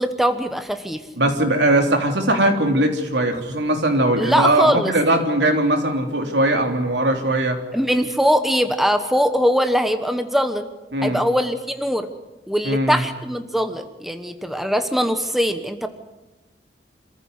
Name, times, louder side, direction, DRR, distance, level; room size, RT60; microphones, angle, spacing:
voice 1, 0.0-1.0 4.2-4.9 7.7-10.7 11.0-12.1 12.5-15.9, equal, ahead, 7 dB, 1.1 m, -21 dB
voice 2, 1.2-7.6 10.9-11.2 12.6-13.0, right 1 dB, 80° right, 4 dB, 3.4 m, -20 dB
27.0 x 14.5 x 9.6 m, 1.1 s
head